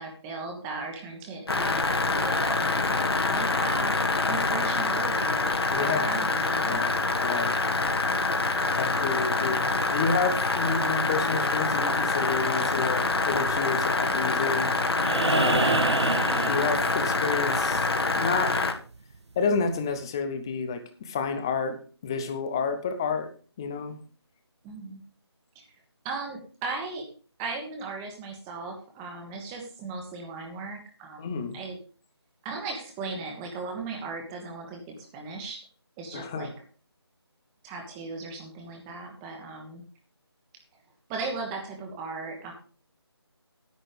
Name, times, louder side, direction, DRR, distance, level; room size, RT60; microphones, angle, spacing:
voice 1, 0.0-3.0 3.3-3.9 4.3-6.8 15.5-16.0 24.6-25.0 26.0-27.0 27.4-31.3 31.5-31.8 32.4-35.6 36.0-36.5 37.6-39.8 41.1-42.5, right 3 dB, 10° right, 2 dB, 1.3 m, -37 dB
sound 1, 1.5-18.7, left 3 dB, 65° left, 2.0 m, -26 dB
voice 2, 5.7-6.1 6.6-7.5 8.8-14.7 15.3-15.8 16.5-17.9 18.2-18.6 19.4-21.8 22.0-23.3 23.6-23.9 31.2-31.6 36.1-36.5, left 5 dB, 10° left, 8 dB, 0.6 m, -30 dB
sound 2, 15.0-17.3 19.1-19.2, right 4 dB, 85° right, 0.6 m, -27 dB
10.5 x 8.9 x 5.1 m, 0.38 s
figure-of-eight pair, 170°, 14 cm